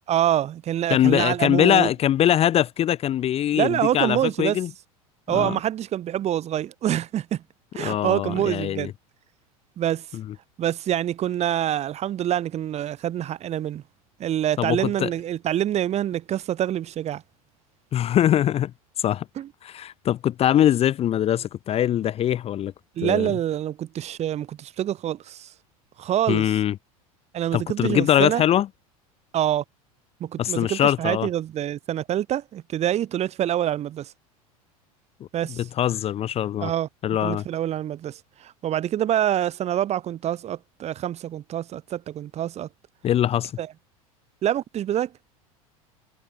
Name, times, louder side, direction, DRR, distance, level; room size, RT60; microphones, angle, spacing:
voice 1, 0.1-1.9 3.5-4.6 5.3-7.4 7.7-8.9 9.8-10.0 10.6-13.8 14.2-17.2 19.4-19.5 23.0-25.5 26.0-26.5 27.3-28.4 29.3-29.6 30.2-34.1 35.3-35.6 36.6-36.9 37.2-42.7 43.6-43.7 44.4-45.1, right 11 dB, 35° right, 0.9 m, -26 dB
voice 2, 0.9-4.7 5.3-5.6 7.8-8.9 10.1-10.2 14.6-15.1 17.9-18.7 19.0-19.2 19.6-22.7 23.0-23.3 26.3-26.8 27.5-28.7 30.4-31.3 35.6-36.7 37.0-37.4 43.0-43.5, left 11 dB, 35° left, 0.6 m, -22 dB
hypercardioid pair, 85°, 19 cm